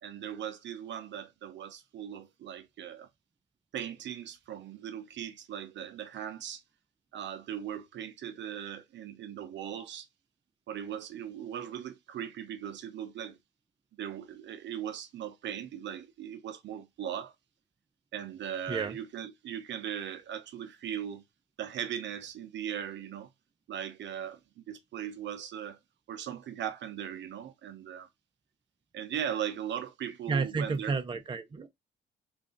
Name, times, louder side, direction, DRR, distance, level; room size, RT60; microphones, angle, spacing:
voice 1, 0.0-3.1 3.7-6.6 7.1-10.1 10.7-13.4 14.0-17.3 18.1-21.2 21.6-23.3 23.7-24.4 24.7-25.8 26.1-28.1 28.9-31.0, right 9 dB, 65° right, 0.7 m, -39 dB
voice 2, 30.3-31.7, right 4 dB, 25° right, 0.6 m, -31 dB
3.3 x 2.5 x 3.7 m
cardioid pair, 90°, 20 cm